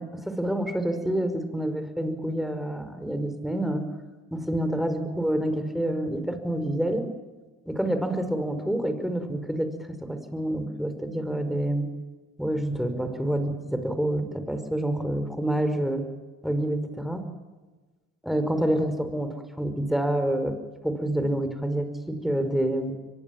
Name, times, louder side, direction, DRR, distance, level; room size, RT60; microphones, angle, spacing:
voice 1, 0.0-3.9 4.3-7.1 7.7-9.7 10.0-11.9 12.4-16.0 16.4-17.3 18.2-20.6 20.8-22.9, right 1 dB, ahead, 9 dB, 5.2 m, -27 dB
23.5 x 20.5 x 7.4 m, 1.3 s
hypercardioid pair, 60°, 39 cm